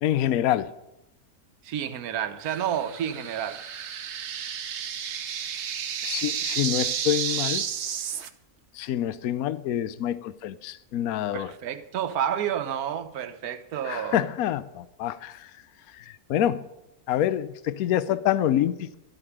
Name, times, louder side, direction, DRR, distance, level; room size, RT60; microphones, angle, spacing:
voice 1, 0.0-0.7 6.0-7.7 8.7-11.5 13.8-15.5 15.9-16.6 17.1-19.0, left 11 dB, 70° left, 1.1 m, -26 dB
voice 2, 1.6-3.6 11.3-14.2, right 9 dB, 75° right, 1.4 m, -30 dB
sound 1, 2.4-8.3, right 8 dB, 55° right, 1.0 m, -31 dB
12.5 x 8.1 x 9.8 m
omnidirectional pair, 1.6 m